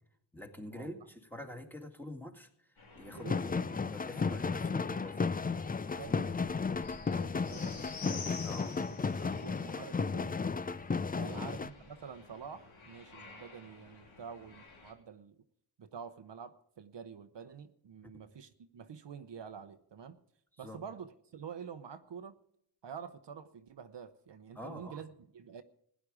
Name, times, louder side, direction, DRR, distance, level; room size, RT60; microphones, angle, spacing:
voice 1, 0.3-3.7 3.9-5.4 5.9-6.2 8.4-8.8 11.1-11.4 18.0-18.2 20.6-20.8 24.6-25.0, left 1 dB, 5° left, 4 dB, 2.0 m, -47 dB
sound 1, 2.8-14.9, left 4 dB, 85° left, 3.0 m, -51 dB
sound 2, 3.1-11.7, left 4 dB, 20° left, 0.4 m, -34 dB
voice 2, 3.1-3.9 5.9-6.5 6.9-8.0 8.8-10.4 11.1-15.4 15.8-20.2 20.6-22.4 22.8-25.6, right 7 dB, 60° right, 9 dB, 0.9 m, -48 dB
16.0 x 10.0 x 5.0 m, 0.71 s
cardioid pair, 60°, 47 cm